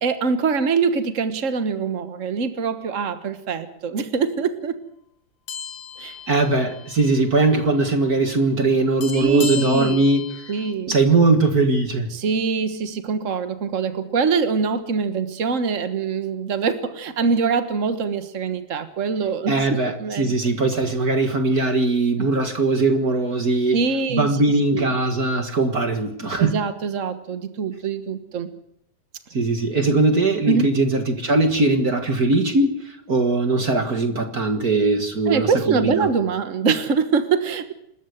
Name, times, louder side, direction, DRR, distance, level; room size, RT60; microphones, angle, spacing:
voice 1, 0.0-4.8 6.0-6.1 9.1-10.0 10.5-11.0 12.1-20.3 23.7-24.3 24.7-24.9 26.4-28.5 30.5-30.7 35.3-37.7, right 5 dB, 85° right, 10 dB, 0.6 m, -24 dB
sound 1, 5.5-7.1 7.4-7.6 9.0-10.7, left 6 dB, 75° left, 3.3 m, -35 dB
voice 2, 6.0-10.4 10.9-12.1 19.5-23.8 24.1-26.5 29.3-36.1, right 3 dB, 40° right, 7 dB, 1.6 m, -20 dB
27.0 x 13.5 x 7.9 m, 0.76 s
omnidirectional pair, 3.6 m